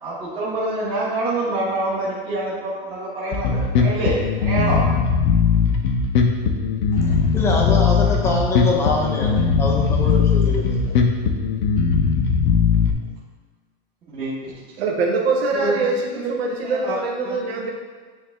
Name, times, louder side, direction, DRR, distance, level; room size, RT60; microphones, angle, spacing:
voice 1, 0.0-4.8 14.1-14.5 15.6-15.7 16.6-17.0 17.2-17.4, right 2 dB, 15° right, -8 dB, 1.0 m, -26 dB
Bass guitar, 3.3-12.9, left 6 dB, 45° left, 0.6 m, -19 dB
voice 2, 6.9-10.9, left 3 dB, 10° left, -1 dB, 0.4 m, -24 dB
voice 3, 14.8-17.7, right 3 dB, 70° right, -1 dB, 1.2 m, -23 dB
9.5 x 3.3 x 3.2 m, 1.5 s
supercardioid pair, 165°, 33 cm